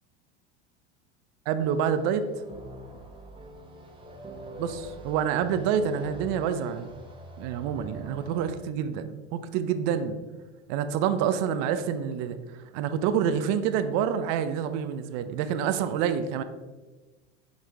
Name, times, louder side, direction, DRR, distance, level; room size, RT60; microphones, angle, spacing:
voice 1, 1.5-2.2 4.6-6.9 7.4-10.2 10.7-12.4 12.7-16.4, right 8 dB, 55° right, 11 dB, 0.6 m, -27 dB
sound 1, 1.6-8.6, right 1 dB, 15° right, 1.1 m, -43 dB
6.5 x 4.9 x 3.5 m, 1.2 s
supercardioid pair, 110°, 34 cm